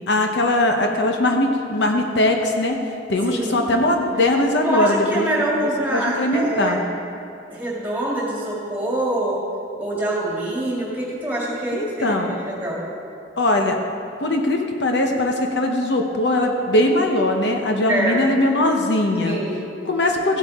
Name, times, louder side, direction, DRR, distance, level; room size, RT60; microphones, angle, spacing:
voice 1, 0.1-2.8 3.1-5.3 5.6-6.8 11.7-12.4 13.4-13.8 14.2-19.4 19.8-20.4, left 1 dB, 65° left, 3 dB, 0.8 m, -20 dB
voice 2, 3.2-3.7 4.6-6.9 7.5-9.4 9.8-12.9 17.9-18.2 19.2-19.7, right 1 dB, 10° right, -5 dB, 2.3 m, -25 dB
15.0 x 8.2 x 3.6 m, 2.7 s
head